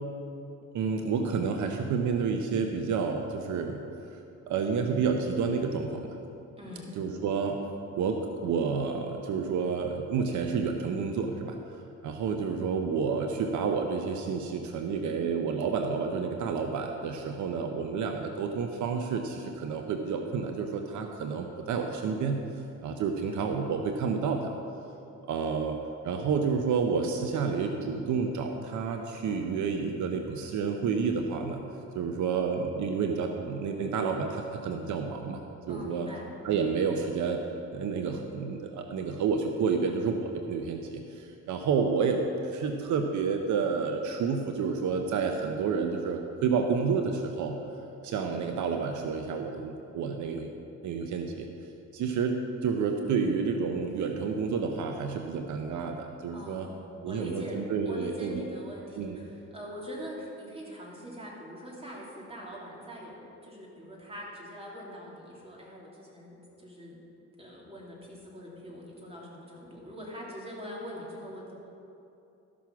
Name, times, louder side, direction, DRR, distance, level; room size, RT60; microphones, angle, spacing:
voice 1, 0.7-3.8 4.5-6.1 7.0-7.7 8.0-11.6 12.0-22.4 22.8-24.5 25.3-25.8 26.0-31.6 31.9-35.4 35.7-36.1 36.4-37.4 37.7-47.6 48.0-50.5 50.8-51.5 51.9-56.7 57.0-58.4 59.0-59.2, right 5 dB, 75° right, 4 dB, 0.8 m, -30 dB
voice 2, 6.6-6.9 35.7-36.3 56.3-67.0 67.4-71.5, equal, 20° right, -4 dB, 3.0 m, -43 dB
13.5 x 6.2 x 5.8 m, 2.8 s
cardioid pair, 90°, 30 cm